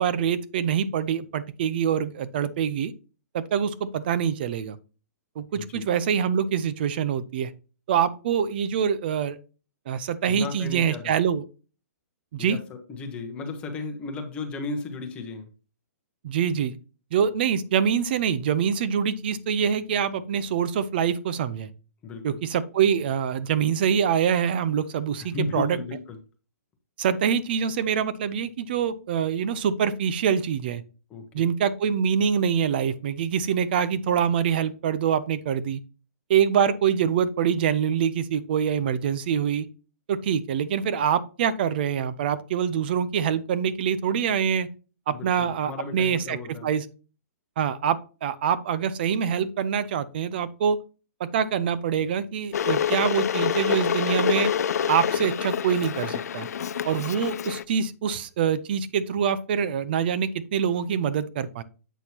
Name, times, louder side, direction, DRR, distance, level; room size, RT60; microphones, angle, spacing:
voice 1, 0.0-2.9 3.3-4.8 5.4-7.5 7.9-9.4 9.9-11.4 12.3-12.6 16.2-16.8 17.1-21.7 22.2-25.8 27.0-30.8 31.3-35.8 36.3-39.7 40.1-44.7 45.1-46.9 47.6-50.8 51.2-54.5 54.9-56.5 56.8-61.6, right 8 dB, 35° right, 15 dB, 0.6 m, -25 dB
voice 2, 5.5-5.9 10.3-11.1 12.4-15.5 22.0-22.4 25.2-26.2 31.1-31.5 45.1-46.7, left 3 dB, 10° left, 4 dB, 1.1 m, -35 dB
Water / Boiling, 52.5-57.6, left 8 dB, 70° left, 0.4 m, -26 dB
8.0 x 6.3 x 2.8 m, 0.34 s
hypercardioid pair, 170°, 9 cm